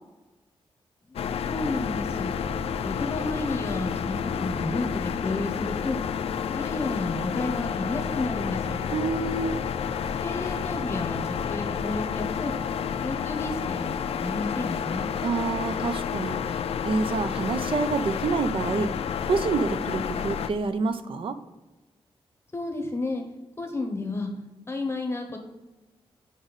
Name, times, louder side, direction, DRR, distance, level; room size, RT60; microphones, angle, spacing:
voice 1, 1.1-2.5 2.8-6.0 6.5-8.8 10.2-12.6 13.0-15.1 22.5-23.2 23.6-24.3 24.7-25.4, left 2 dB, 25° left, 4 dB, 0.8 m, -31 dB
sound 1, 1.2-20.5, left 7 dB, 75° left, 0.4 m, -30 dB
voice 2, 8.9-9.6 15.2-21.4, right 4 dB, 60° right, 11 dB, 0.6 m, -28 dB
9.8 x 5.0 x 4.0 m, 1.2 s
wide cardioid pair, 140°, 10 cm